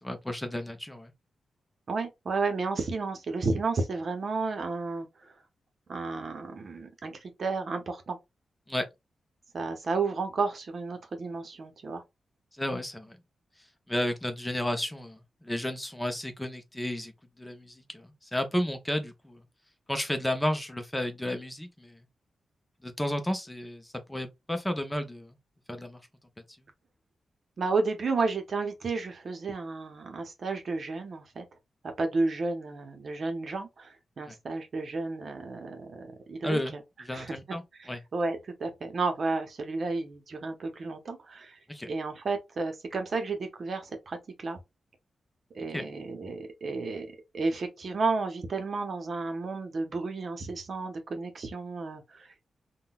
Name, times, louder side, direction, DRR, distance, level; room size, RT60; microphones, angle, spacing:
voice 1, 0.0-1.1 8.7-8.9 12.6-13.2 13.9-17.1 17.4-19.4 19.9-22.0 22.8-25.3 25.7-26.0 34.3-34.4 36.4-36.7 37.1-37.6 37.9-38.0 41.7-41.9 45.7-45.9, left 1 dB, 10° left, 0.6 m, -32 dB
voice 2, 1.9-5.3 5.9-8.2 9.5-12.0 27.6-31.4 32.0-36.8 37.1-41.6 41.9-44.6 45.5-47.1 47.3-52.3, right 3 dB, 55° right, 0.8 m, -32 dB
3.7 x 2.2 x 2.3 m
cardioid pair, 95°, 0 cm